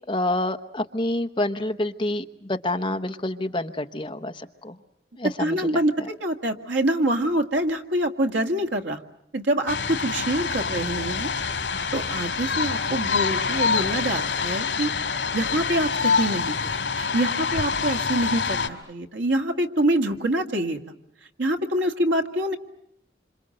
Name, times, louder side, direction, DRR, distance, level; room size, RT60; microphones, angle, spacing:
voice 1, 0.1-4.8 5.2-5.8, left 1 dB, 25° left, 8 dB, 1.0 m, -28 dB
voice 2, 5.4-9.0 9.3-11.3 11.9-14.9 15.3-16.5 17.0-20.8 21.4-22.6, right 1 dB, 85° right, 6 dB, 2.0 m, -25 dB
sound 1, 9.7-18.7, left 5 dB, 70° left, 2.7 m, -26 dB
27.5 x 26.5 x 7.8 m, 0.79 s
head